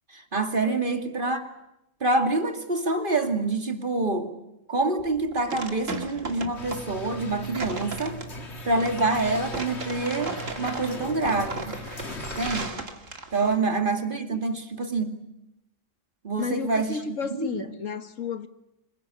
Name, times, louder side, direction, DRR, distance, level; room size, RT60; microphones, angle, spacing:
voice 1, 0.1-1.4 2.0-4.3 4.7-8.2 8.6-11.8 12.4-12.8 13.3-15.2 16.2-17.0 17.4-17.6, right 3 dB, 40° right, 2.5 m, -26 dB
sound 1, 5.0-13.6, right 3 dB, 70° right, 2.7 m, -36 dB
sound 2, 6.5-12.7, left 1 dB, 55° left, 2.5 m, -38 dB
voice 2, 16.4-18.5, left 6 dB, 75° left, 1.9 m, -33 dB
26.5 x 22.0 x 9.9 m
omnidirectional pair, 1.4 m